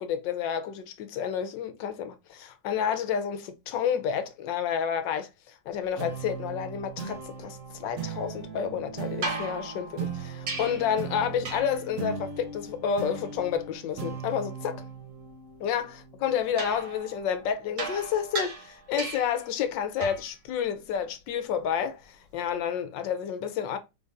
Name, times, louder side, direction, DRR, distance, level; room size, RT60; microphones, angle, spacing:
voice 1, 0.0-5.3 5.7-14.8 15.6-23.8, left 8 dB, 75° left, 1.3 m, -30 dB
sound 1, 6.0-16.8, right 5 dB, 55° right, 1.0 m, -39 dB
sound 2, 9.2-11.0 11.4-11.9 16.6-19.5 20.0-20.4 22.3-22.4, right 3 dB, 85° right, 1.9 m, -36 dB
3.8 x 3.7 x 2.5 m
omnidirectional pair, 2.1 m